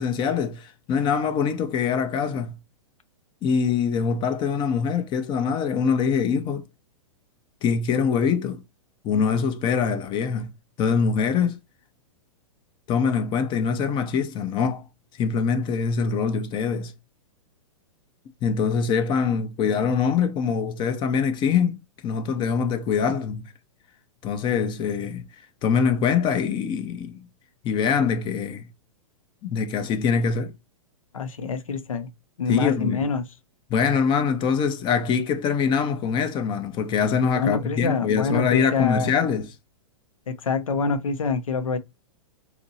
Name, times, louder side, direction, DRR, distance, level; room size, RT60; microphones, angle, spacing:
voice 1, 0.0-2.6 3.4-6.6 7.6-8.6 9.0-10.5 10.8-11.6 12.9-14.8 15.2-16.9 18.4-23.5 24.2-25.2 25.6-27.3 27.6-28.7 29.4-30.5 32.5-33.0 33.7-39.5, left 6 dB, 30° left, 0.5 m, -24 dB
voice 2, 31.1-32.1 32.4-33.2 37.3-39.1 40.3-41.8, left 5 dB, 85° left, 0.7 m, -26 dB
2.9 x 2.5 x 4.0 m
hypercardioid pair, 115°, 17 cm